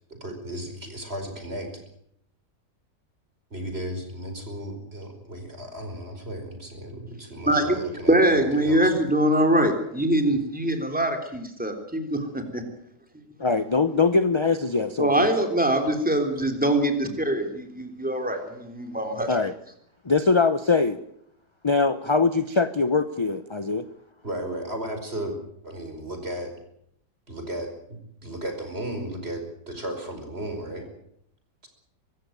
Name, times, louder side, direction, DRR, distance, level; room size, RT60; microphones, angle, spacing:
voice 1, 0.2-1.7 3.5-8.9 24.2-25.3 25.6-26.5 27.3-30.9, right 1 dB, 35° right, 5 dB, 5.2 m, -35 dB
voice 2, 7.5-7.8 8.1-12.6 15.0-19.4, right 1 dB, 5° right, 5 dB, 3.5 m, -23 dB
voice 3, 13.4-15.3 19.3-19.5 20.0-21.0 21.6-23.9, left 4 dB, 25° left, 11 dB, 0.6 m, -22 dB
24.5 x 15.0 x 9.2 m, 0.73 s
omnidirectional pair, 1.8 m